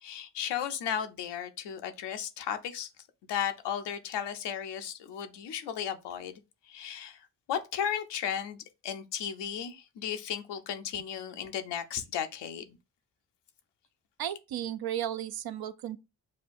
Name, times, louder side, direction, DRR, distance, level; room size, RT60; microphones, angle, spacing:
voice 1, 0.0-2.9 3.3-6.4 6.7-12.8, left 9 dB, 80° left, 0.7 m, -35 dB
voice 2, 14.2-16.0, right 10 dB, 60° right, 0.6 m, -34 dB
6.4 x 2.3 x 2.5 m
supercardioid pair, 45°, 41 cm